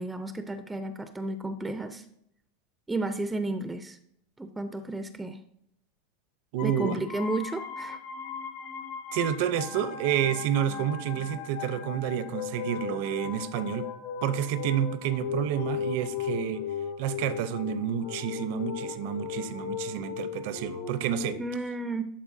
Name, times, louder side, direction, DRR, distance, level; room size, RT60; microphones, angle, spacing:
voice 1, 0.0-2.1 2.9-4.0 4.4-5.4 6.6-8.0 21.4-22.0, right 2 dB, 10° right, 9 dB, 0.5 m, -32 dB
voice 2, 6.5-6.9 9.1-13.9 14.2-16.6 17.0-21.4, right 9 dB, 65° right, 13 dB, 0.7 m, -29 dB
sound 1, 6.6-21.3, left 7 dB, 65° left, 1.6 m, -37 dB
11.5 x 4.3 x 2.7 m, 0.72 s
supercardioid pair, 135°, 0 cm